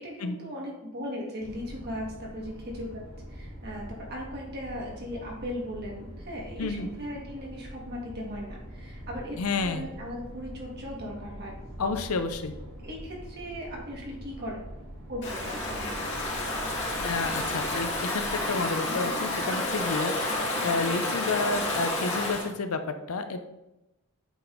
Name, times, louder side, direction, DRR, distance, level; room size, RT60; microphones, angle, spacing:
voice 1, 0.0-3.0 3.3-11.5 12.8-14.6 15.1-16.0, equal, 50° right, -2 dB, 1.8 m, -38 dB
sound 1, 1.4-18.0, equal, 80° right, 2.2 m, -44 dB
voice 2, 6.6-6.9 9.4-9.8 11.8-12.5 17.0-23.4, left 4 dB, 75° left, 8 dB, 0.6 m, -30 dB
Stream / Ocean, 15.2-22.5, left 1 dB, 55° left, 1.9 m, -30 dB
8.4 x 3.6 x 3.8 m, 0.96 s
head